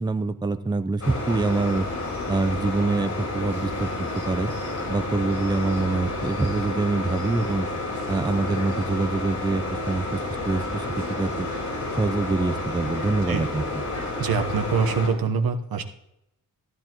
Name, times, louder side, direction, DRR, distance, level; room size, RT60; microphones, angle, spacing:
voice 1, 0.0-1.9 2.3-4.5 4.9-7.7 8.1-10.2 10.5-10.9 11.2-11.5 11.9-13.8, right 3 dB, 10° right, 10 dB, 0.5 m, -25 dB
sound 1, 1.0-15.1, left 2 dB, 55° left, 4.3 m, -30 dB
voice 2, 14.0-15.8, right 5 dB, 85° right, 5 dB, 1.1 m, -25 dB
14.5 x 11.0 x 3.0 m, 0.83 s
wide cardioid pair, 115°, 35 cm